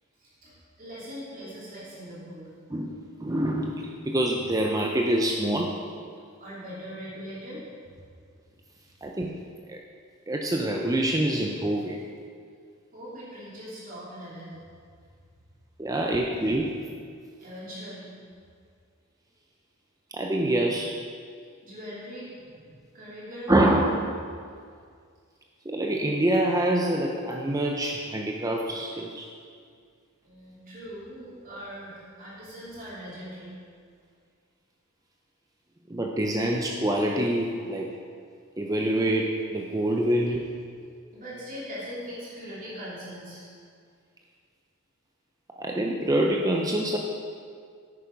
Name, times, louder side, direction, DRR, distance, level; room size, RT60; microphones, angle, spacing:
voice 1, 0.2-2.5 6.4-7.7 12.9-14.6 17.4-18.1 21.6-23.7 30.2-33.6 41.1-43.5, equal, 40° right, -8 dB, 3.1 m, -41 dB
voice 2, 2.7-5.8 9.0-9.3 9.7-9.8 10.3-12.0 15.8-16.7 20.1-21.0 23.5-24.0 25.7-29.3 35.9-37.9 38.6-40.5 45.6-47.0, right 1 dB, 15° right, 0 dB, 0.6 m, -26 dB
10.5 x 8.7 x 5.2 m, 2.1 s
head